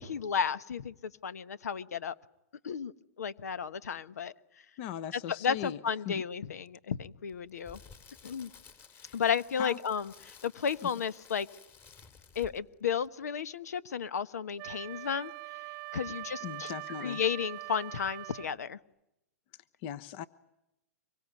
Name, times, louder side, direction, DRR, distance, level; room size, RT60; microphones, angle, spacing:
voice 1, 0.0-2.1 2.6-2.9 3.2-4.3 5.4-7.8 8.2-8.5 9.1-10.1 10.4-11.5 12.3-15.3 15.9-16.7 17.0-18.8, left 7 dB, 90° left, 15 dB, 1.2 m, -33 dB
voice 2, 4.8-5.8 6.0-6.2 8.9-9.2 9.6-9.8 10.8-10.9 16.4-17.2 19.5-20.2, left 10 dB, 45° left, 15 dB, 1.1 m, -39 dB
Crackle, 7.3-12.8 13.0-13.2, left 5 dB, 25° left, 3.5 m, -55 dB
Wind instrument woodwind instrument, 14.6-18.6, right 27 dB, 40° right, 0.9 m, -43 dB
25.5 x 23.0 x 9.5 m, 0.87 s
hypercardioid pair, 135°, 8 cm